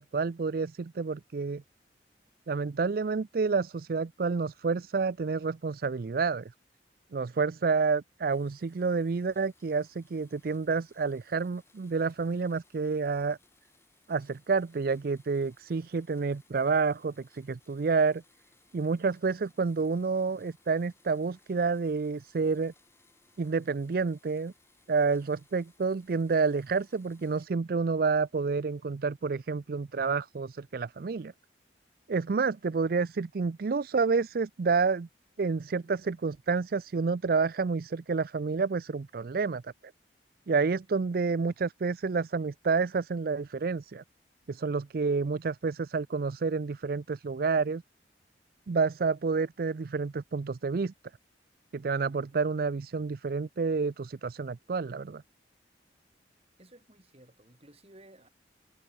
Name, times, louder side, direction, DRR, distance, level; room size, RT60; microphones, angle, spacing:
voice 1, 0.0-1.6 2.5-6.5 7.1-13.4 14.1-18.2 18.7-22.7 23.4-24.5 24.9-31.3 32.1-35.1 35.4-39.7 40.5-44.0 44.5-47.8 48.7-50.9 51.7-55.2, right 4 dB, 55° right, 0.4 m, -29 dB
Domestic sounds home sounds, 8.3-27.5, left 3 dB, 15° left, 7.4 m, -66 dB
voice 2, 56.6-58.3, right 1 dB, 35° right, 5.2 m, -56 dB
head